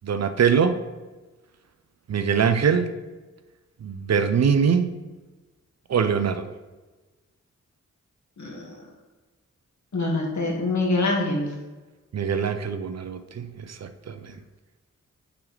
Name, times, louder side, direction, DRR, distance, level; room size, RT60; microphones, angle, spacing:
voice 1, 0.0-0.8 2.1-2.9 3.8-5.0 5.9-6.5 12.1-14.3, right 6 dB, 55° right, 9 dB, 0.6 m, -23 dB
voice 2, 8.4-8.8 9.9-11.5, left 2 dB, 60° left, -2 dB, 1.8 m, -25 dB
8.1 x 3.6 x 3.2 m, 1.2 s
cardioid pair, 40°, 32 cm